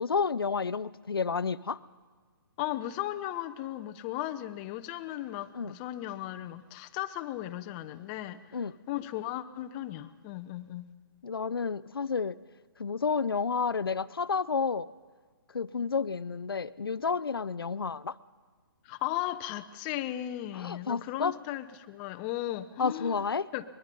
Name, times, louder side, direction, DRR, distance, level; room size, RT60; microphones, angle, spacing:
voice 1, 0.0-1.8 5.5-5.7 8.5-8.7 11.2-12.4 12.8-14.9 15.5-18.2 20.5-21.4 22.8-23.5, left 5 dB, 85° left, 15 dB, 0.6 m, -30 dB
voice 2, 2.6-8.6 8.9-10.9 18.8-23.2 23.5-23.6, left 14 dB, 25° left, 8 dB, 0.8 m, -36 dB
23.5 x 21.0 x 5.4 m, 1.5 s
hypercardioid pair, 145°, 12 cm